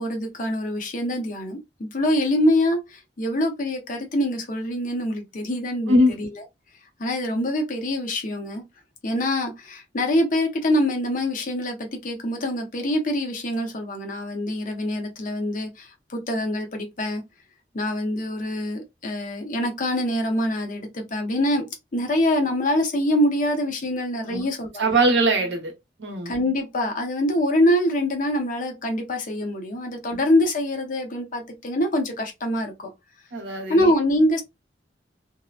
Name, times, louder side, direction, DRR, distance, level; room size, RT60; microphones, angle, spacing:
voice 1, 0.0-6.4 7.0-8.6 9.0-17.2 17.7-21.6 21.9-25.0 26.3-32.9 33.7-34.4, left 1 dB, 50° left, 0.7 m, -24 dB
voice 2, 24.8-25.7 26.0-26.3 30.1-30.2 33.3-33.9, right 1 dB, 75° right, 0.9 m, -21 dB
2.8 x 2.0 x 2.3 m
head